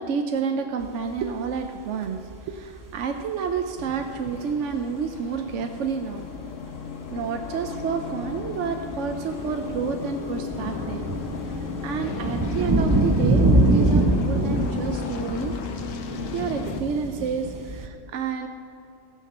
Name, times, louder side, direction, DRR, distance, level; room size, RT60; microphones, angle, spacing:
voice 1, 0.0-6.3 7.1-11.1 11.5-15.6 16.3-18.5, right 6 dB, 75° right, 5 dB, 0.9 m, -29 dB
sound 1, 0.8-0.9 1.2-1.7 2.1-4.1 4.7-4.8 5.0-5.1 5.4-5.5 6.1-6.9 7.2-17.9, right 1 dB, 25° right, 0.5 m, -25 dB
sound 2, 3.8-16.8, left 6 dB, 80° left, 1.1 m, -35 dB
17.5 x 6.5 x 5.6 m, 2.6 s
omnidirectional pair, 1.3 m